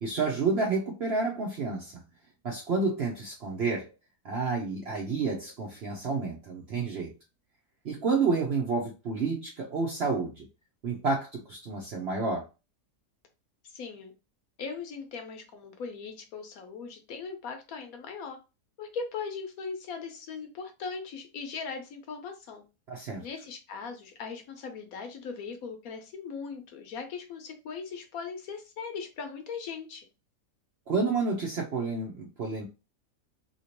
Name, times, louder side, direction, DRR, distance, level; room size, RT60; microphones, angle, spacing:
voice 1, 0.0-2.0 2.4-3.9 4.2-7.1 7.8-10.5 10.8-12.5 22.9-23.3 30.9-32.6, right 4 dB, 60° right, 0 dB, 0.7 m, -30 dB
voice 2, 13.7-14.1 14.6-18.4 18.8-22.6 23.2-30.0, left 5 dB, 65° left, 6 dB, 1.0 m, -39 dB
2.8 x 2.8 x 2.9 m, 0.28 s
omnidirectional pair, 1.7 m